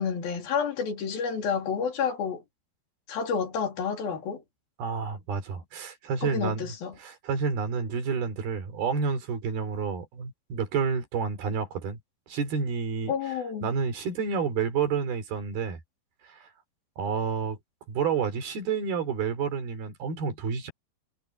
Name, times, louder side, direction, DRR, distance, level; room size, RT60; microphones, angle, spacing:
voice 1, 0.0-2.4 3.1-4.4 6.2-6.9 13.1-13.7, left 6 dB, 65° left, 4.6 m, -29 dB
voice 2, 4.8-6.7 7.0-12.0 12.3-15.8 16.3-16.5 17.0-17.6 17.9-20.7, right 6 dB, 70° right, 5.2 m, -29 dB
omnidirectional pair, 4.5 m